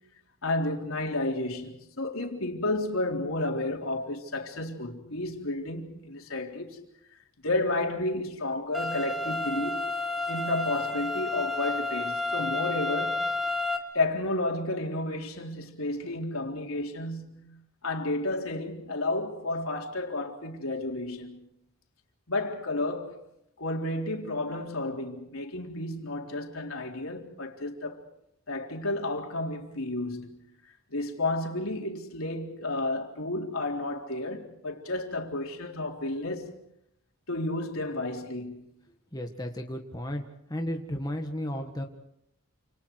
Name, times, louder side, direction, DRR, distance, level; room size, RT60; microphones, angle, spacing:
voice 1, 0.4-6.8 7.4-9.8 10.3-13.3 13.9-21.5 22.3-23.2 23.6-28.0 28.5-30.5 30.9-36.6 37.3-38.7, left 2 dB, 85° left, 3.9 m, -32 dB
sound 1, 8.7-13.8, left 2 dB, ahead, 2.1 m, -30 dB
voice 2, 39.1-40.2 40.5-41.8, equal, 20° left, 1.8 m, -33 dB
29.0 x 27.5 x 4.8 m
head